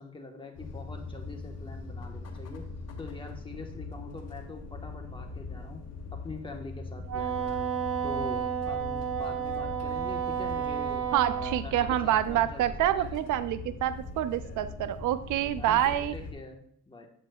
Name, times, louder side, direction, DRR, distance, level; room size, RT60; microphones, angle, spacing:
voice 1, 0.0-2.6 3.0-5.8 6.1-7.7 8.0-11.1 11.4-13.4 15.6-17.1, left 3 dB, 15° left, 2 dB, 1.2 m, -44 dB
sound 1, 0.5-16.3, left 3 dB, 55° left, 1.3 m, -41 dB
Wind instrument woodwind instrument, 7.1-11.6, right 8 dB, 50° right, 0.7 m, -31 dB
voice 2, 11.1-16.1, right 12 dB, 80° right, 13 dB, 0.5 m, -27 dB
8.2 x 8.0 x 2.3 m, 0.62 s
cardioid pair, 90°, 30 cm